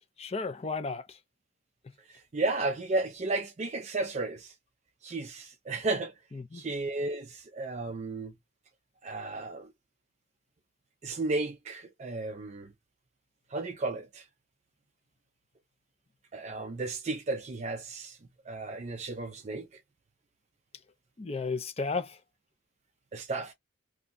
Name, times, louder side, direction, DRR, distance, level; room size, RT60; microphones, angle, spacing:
voice 1, 0.2-1.2 6.5-6.6 21.2-22.2, left 4 dB, 30° left, 0.4 m, -33 dB
voice 2, 2.1-4.5 5.0-6.1 6.5-8.3 9.0-9.7 11.0-12.7 13.5-14.2 16.3-18.2 18.5-19.7 23.1-23.5, right 2 dB, 35° right, 0.4 m, -33 dB
2.6 x 2.2 x 3.7 m
head